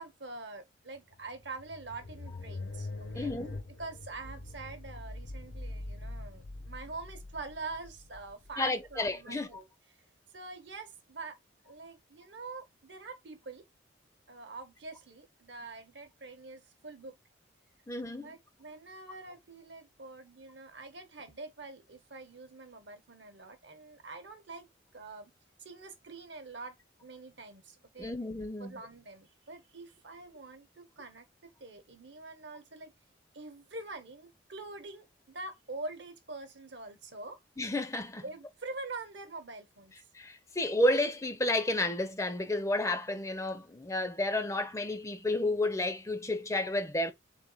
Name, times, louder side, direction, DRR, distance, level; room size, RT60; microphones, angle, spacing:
voice 1, 0.0-2.9 3.1-3.3 3.8-9.7 10.3-11.4 11.6-13.6 14.3-17.2 18.2-24.7 24.9-25.3 25.6-28.1 28.6-32.9 33.3-37.4 38.2-39.9, right 3 dB, 65° right, 1.0 m, -45 dB
sound 1, 1.1-9.5, left 2 dB, 80° left, 1.0 m, -44 dB
voice 2, 3.1-3.6 8.6-9.5 17.9-18.3 28.0-28.8 37.6-38.2 40.1-47.1, left 1 dB, 15° left, 0.5 m, -31 dB
3.7 x 3.6 x 3.9 m
head